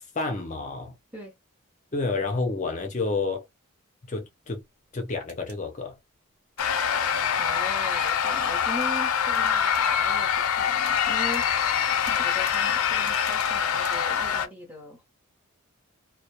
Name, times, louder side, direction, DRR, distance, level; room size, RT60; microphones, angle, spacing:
voice 1, 0.2-0.9 1.9-3.4 4.1-4.6 4.9-5.9, left 3 dB, 35° left, 0.5 m, -29 dB
sound 1, 5.3-5.6 6.6-6.9 8.1-8.3 8.8-9.0 9.3-9.9 10.8-11.1 11.3-11.5 12.0-12.6 13.0-13.5 13.8-14.0, right 5 dB, 85° right, 0.7 m, -46 dB
sound 2, 6.6-14.5, left 8 dB, 85° left, 0.5 m, -25 dB
voice 2, 7.3-11.4 11.9-15.1, left 1 dB, 10° right, 0.7 m, -40 dB
2.2 x 2.1 x 2.8 m
head